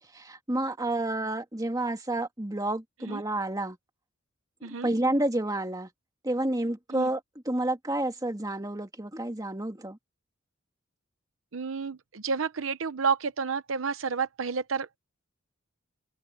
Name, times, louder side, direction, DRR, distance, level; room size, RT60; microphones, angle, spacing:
voice 1, 0.1-3.8 4.6-5.9 6.2-10.0, right 1 dB, 20° right, 2.1 m, -30 dB
voice 2, 11.5-14.9, right 5 dB, 80° right, 0.8 m, -30 dB
open air
head